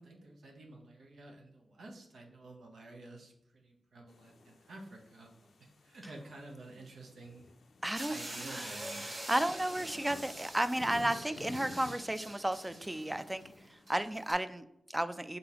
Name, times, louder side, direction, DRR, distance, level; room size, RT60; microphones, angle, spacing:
voice 1, 0.0-5.3 5.6-7.5 8.1-9.2, right 2 dB, 85° right, 0 dB, 0.8 m, -51 dB
sound 1, 4.1-14.1, left 3 dB, 80° left, 0.4 m, -53 dB
voice 2, 7.8-8.7 9.0-13.4 13.7-15.4, right 1 dB, 15° right, 12 dB, 0.3 m, -33 dB
sound 2, 7.9-14.3, right 1 dB, 50° right, 1.1 m, -46 dB
3.9 x 3.8 x 2.8 m, 0.85 s
cardioid pair, 55°, 0 cm